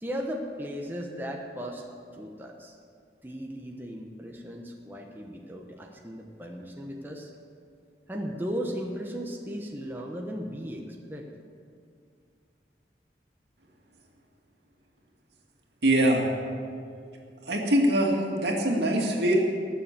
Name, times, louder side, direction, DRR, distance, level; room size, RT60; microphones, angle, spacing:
voice 1, 0.0-1.9 2.1-2.7 3.2-7.3 8.1-11.3, equal, 10° right, 0 dB, 1.0 m, -36 dB
voice 2, 15.8-16.3 17.4-19.4, right 1 dB, 75° right, 0 dB, 2.3 m, -23 dB
19.5 x 7.0 x 7.5 m, 2.3 s
head